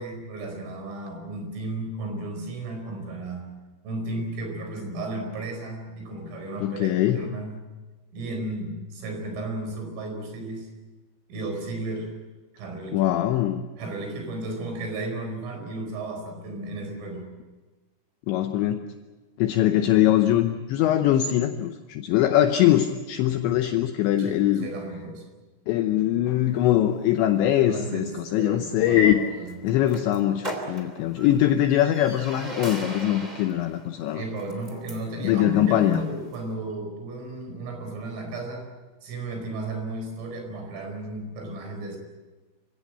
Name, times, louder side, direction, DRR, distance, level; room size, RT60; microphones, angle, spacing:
voice 1, 0.0-3.5 3.8-7.6 8.1-10.7 11.3-12.1 12.5-13.1 13.8-17.3 24.2-25.3 27.6-29.6 34.1-38.7 39.0-42.0, right 1 dB, 80° right, 4 dB, 7.3 m, -34 dB
voice 2, 6.6-7.2 12.9-13.7 18.3-18.8 19.4-24.7 25.7-29.2 29.6-34.2 35.2-36.0, left 12 dB, 75° left, 6 dB, 2.9 m, -22 dB
sound 1, 26.4-36.5, right 1 dB, 15° right, 1.8 m, -41 dB
26.5 x 17.0 x 8.8 m, 1.2 s
omnidirectional pair, 5.8 m